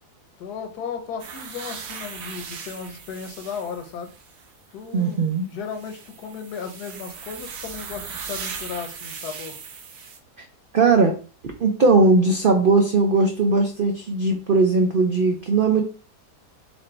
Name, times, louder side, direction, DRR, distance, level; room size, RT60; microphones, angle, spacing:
voice 1, 0.4-4.1 4.7-9.6, left 6 dB, 80° left, 6 dB, 1.4 m, -35 dB
sound 1, 1.2-4.5 5.6-10.2, right 6 dB, 65° right, 1.1 m, -38 dB
voice 2, 4.9-5.5 10.7-11.1 11.6-15.8, right 3 dB, 85° right, 3 dB, 0.4 m, -19 dB
4.4 x 2.5 x 4.3 m, 0.37 s
omnidirectional pair, 1.7 m